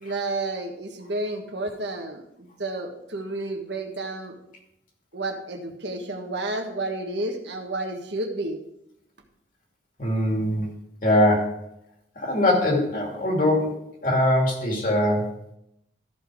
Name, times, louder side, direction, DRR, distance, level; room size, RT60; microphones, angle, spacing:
voice 1, 0.0-4.3 5.1-8.6, right 2 dB, 70° right, 3 dB, 1.5 m, -31 dB
voice 2, 10.0-10.7 11.0-11.6 12.2-15.3, left 1 dB, 45° left, 0 dB, 2.5 m, -22 dB
13.5 x 6.1 x 4.8 m, 0.79 s
head